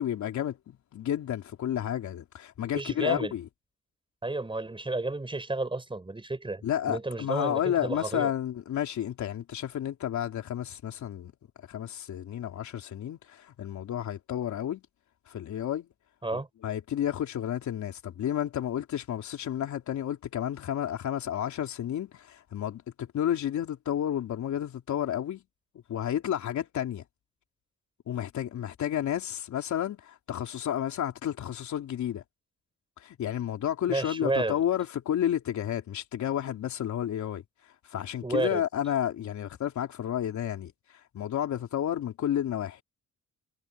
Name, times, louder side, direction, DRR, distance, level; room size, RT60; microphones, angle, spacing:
voice 1, 0.0-3.5 6.6-11.3 11.7-14.8 15.3-15.9 16.3-25.4 25.9-27.0 28.1-32.2 33.0-37.4 37.9-40.7 41.1-42.8, left 10 dB, 70° left, 3.8 m, -31 dB
voice 2, 2.7-3.3 4.2-8.3 16.2-16.5 33.9-34.6 38.2-38.6, right 2 dB, 15° right, 6.3 m, -31 dB
cardioid pair, 90°, 30 cm